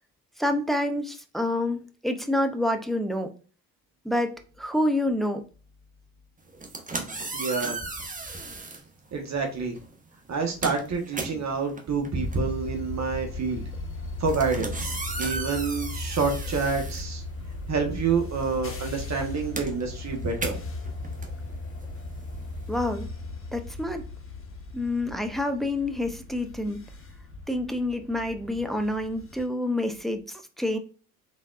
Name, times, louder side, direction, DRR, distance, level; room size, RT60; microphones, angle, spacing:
voice 1, 0.4-3.3 4.0-5.4 22.7-23.1 23.5-24.1 24.7-26.8 27.5-30.8, left 1 dB, ahead, 6 dB, 0.7 m, -28 dB
sound 1, 6.5-8.9 9.7-9.9 10.3-17.8 18.1-22.7, right 3 dB, 20° right, 1.1 m, -36 dB
voice 2, 7.3-7.8 9.1-9.8 10.3-13.6 14.2-17.2 17.7-20.6, right 4 dB, 40° right, 2 dB, 1.3 m, -28 dB
sound 2, 12.1-29.4, left 2 dB, 30° left, 1.3 m, -37 dB
4.0 x 3.6 x 2.5 m, 0.37 s
hypercardioid pair, 55°, 42 cm